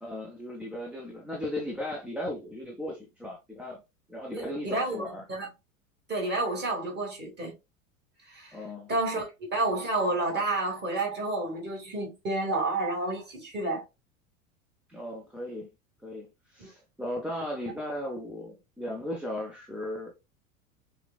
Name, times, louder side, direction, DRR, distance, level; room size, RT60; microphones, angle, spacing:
voice 1, 0.0-3.8 4.1-5.2 8.5-8.9 14.9-15.7 16.0-20.1, left 1 dB, 5° right, 0.6 m, -36 dB
voice 2, 4.3-5.5 6.1-7.5 8.3-8.6 8.9-13.8 16.6-16.7, right 2 dB, 25° right, 2.0 m, -30 dB
5.7 x 2.4 x 2.2 m
figure-of-eight pair, 85°, 43 cm